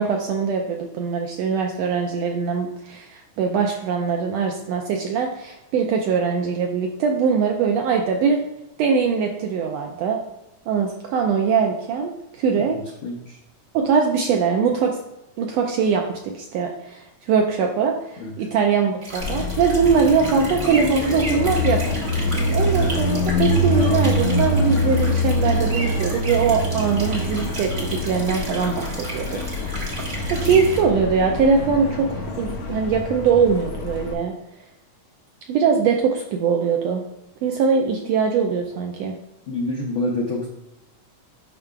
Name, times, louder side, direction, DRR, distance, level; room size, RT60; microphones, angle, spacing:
voice 1, 0.0-8.4 8.8-10.2 10.7-12.8 13.7-15.0 15.4-21.9 22.3-29.7 30.0-34.3 35.5-37.0 37.4-39.1, right 6 dB, 80° right, 2 dB, 1.5 m, -22 dB
voice 2, 12.5-13.4 18.2-18.3 38.0-38.1 39.5-40.5, left 2 dB, 85° left, -2 dB, 1.1 m, -28 dB
sound 1, 19.0-30.8, right 1 dB, 55° right, 0.6 m, -35 dB
Car passing by, 19.2-34.1, left 2 dB, 65° left, 1.7 m, -24 dB
8.8 x 5.6 x 2.3 m, 0.89 s
omnidirectional pair, 3.4 m